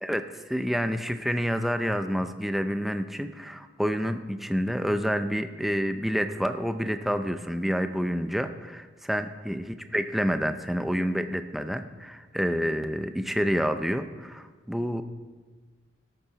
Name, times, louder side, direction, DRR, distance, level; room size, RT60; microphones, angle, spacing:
voice 1, 0.0-9.7 9.9-15.0, equal, ahead, 8 dB, 0.5 m, -28 dB
13.5 x 12.0 x 4.1 m, 1.4 s
head